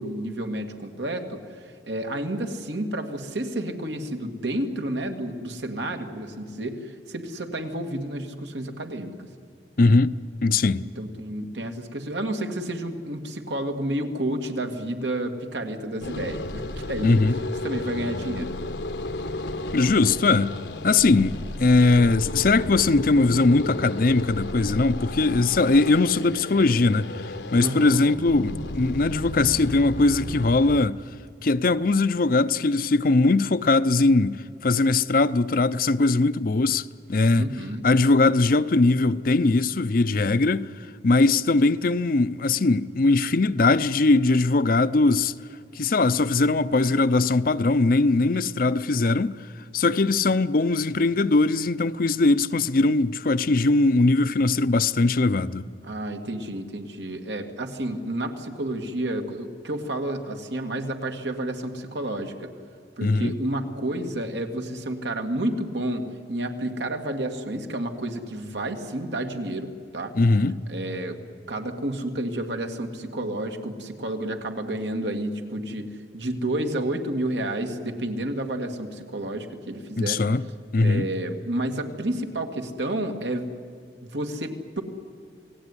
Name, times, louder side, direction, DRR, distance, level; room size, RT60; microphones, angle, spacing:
voice 1, 0.0-9.1 9.8-10.0 11.0-17.2 17.6-18.5 27.6-27.9 37.4-37.8 48.3-48.4 55.8-62.5 63.0-66.0 66.3-70.1 70.7-71.2 71.5-80.2 80.8-83.5 84.1-84.8, right 1 dB, 85° right, 2.2 m, -30 dB
voice 2, 9.8-10.2 10.4-10.8 17.0-17.4 19.7-20.5 20.8-31.0 31.4-37.5 37.8-40.7 41.0-45.3 45.8-49.3 49.7-55.7 63.0-63.3 70.1-70.6 80.0-80.4 80.7-81.1, left 3 dB, 50° left, 0.6 m, -20 dB
sound 1, 16.0-30.9, left 2 dB, 80° left, 1.2 m, -33 dB
28.5 x 18.5 x 9.8 m
head